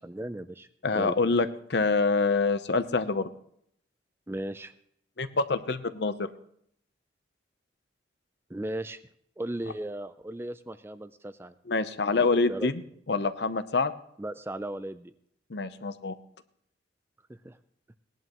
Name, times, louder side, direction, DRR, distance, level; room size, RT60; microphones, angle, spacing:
voice 1, 0.0-1.1 4.3-4.7 8.5-9.0 9.4-11.5 12.1-12.7 14.2-15.1 17.3-17.6, right 1 dB, 10° right, 12 dB, 0.4 m, -36 dB
voice 2, 0.8-3.3 5.2-6.3 11.7-12.8 13.1-13.9 15.5-16.2, left 4 dB, 60° left, 12 dB, 0.7 m, -26 dB
19.0 x 11.0 x 3.0 m, 0.68 s
head